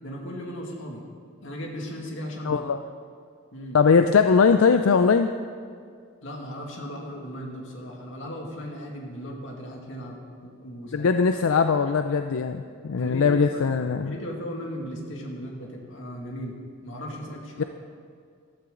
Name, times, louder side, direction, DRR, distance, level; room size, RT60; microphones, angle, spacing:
voice 1, 0.0-1.1 1.4-2.6 3.5-3.8 6.2-11.1 13.0-13.6 14.0-16.6 16.8-17.6, equal, 65° left, 0 dB, 2.3 m, -37 dB
voice 2, 2.5-2.8 3.7-5.3 10.9-14.1 17.6-17.7, left 5 dB, 85° left, 8 dB, 0.5 m, -20 dB
15.0 x 12.5 x 3.9 m, 2.2 s
head